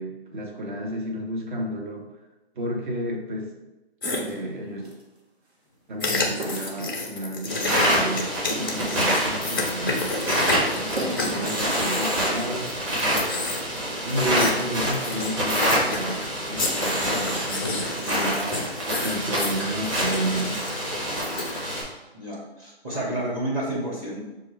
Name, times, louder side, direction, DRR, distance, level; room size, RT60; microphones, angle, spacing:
voice 1, 0.0-2.1 2.6-3.5 4.1-4.9 5.9-10.2 10.7-12.7 14.0-18.7 19.0-20.6, right 1 dB, 50° right, 1 dB, 0.9 m, -31 dB
sound 1, 4.0-4.2 6.0-12.7 13.0-13.8 14.1-14.5 14.9-16.3 16.6-21.5, left 3 dB, 20° left, 0.4 m, -30 dB
sound 2, 4.0-5.0 6.3-7.0 7.5-7.9 8.3-9.3 9.7-9.8 10.1-10.2 10.7-12.3 12.6-12.7 12.9-13.1 13.7-13.8 14.2-15.2 15.7-15.9 16.4-16.5 17.1-17.9, right 1 dB, 85° right, 1.1 m, -37 dB
sound 3, 7.5-21.8, equal, 30° right, 1.4 m, -26 dB
voice 2, 22.1-24.2, right 1 dB, 15° right, -5 dB, 0.7 m, -30 dB
5.7 x 2.4 x 3.2 m, 1.0 s
hypercardioid pair, 150°, 32 cm